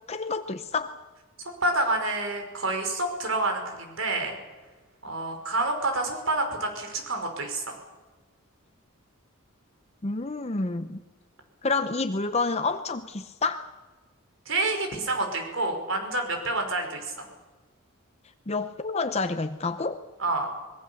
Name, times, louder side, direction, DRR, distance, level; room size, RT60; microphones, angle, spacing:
voice 1, 0.1-1.0 10.0-11.0 11.6-13.7 18.5-20.0, left 3 dB, 30° left, 9 dB, 0.7 m, -29 dB
voice 2, 1.4-4.4 5.0-7.8 14.5-17.3 20.2-20.5, right 2 dB, 65° right, 5 dB, 5.4 m, -28 dB
24.0 x 22.0 x 7.1 m, 1.3 s
head